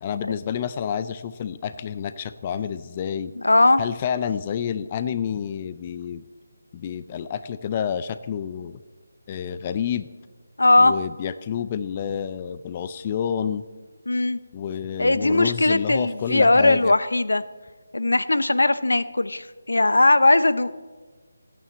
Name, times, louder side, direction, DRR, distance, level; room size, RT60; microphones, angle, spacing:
voice 1, 0.0-3.3 3.8-6.2 6.7-8.8 9.3-10.1 10.8-13.6 14.5-16.9, left 8 dB, 25° left, 13 dB, 0.5 m, -29 dB
voice 2, 3.4-3.8 10.6-10.9 14.1-14.4 15.0-17.4 17.9-20.7, left 2 dB, 80° left, 14 dB, 0.8 m, -19 dB
16.0 x 9.4 x 7.6 m, 1.4 s
figure-of-eight pair, 160°, 0 cm